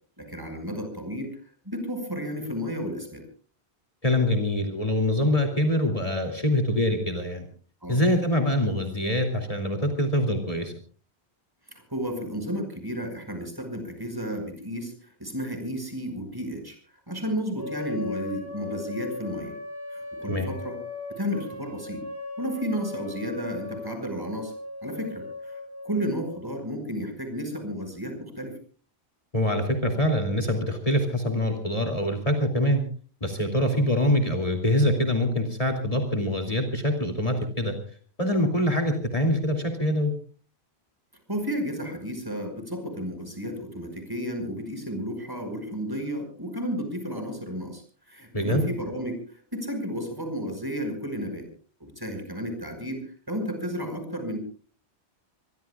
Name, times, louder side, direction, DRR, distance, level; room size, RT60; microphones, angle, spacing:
voice 1, 0.2-1.4 1.7-3.3 7.8-8.0 11.7-16.8 17.1-19.5 19.9-20.8 21.1-22.1 22.4-24.5 24.8-28.5 41.3-51.5 51.8-54.4, equal, 20° right, 6 dB, 5.6 m, -32 dB
voice 2, 4.0-7.5 7.9-10.7 20.3-20.5 29.3-32.8 33.2-37.7 38.2-40.1 48.3-48.6, left 1 dB, 35° left, 3 dB, 2.8 m, -24 dB
sound 1, 17.6-26.5, left 3 dB, 65° left, 4.1 m, -38 dB
25.0 x 22.5 x 2.3 m, 0.41 s
omnidirectional pair, 1.1 m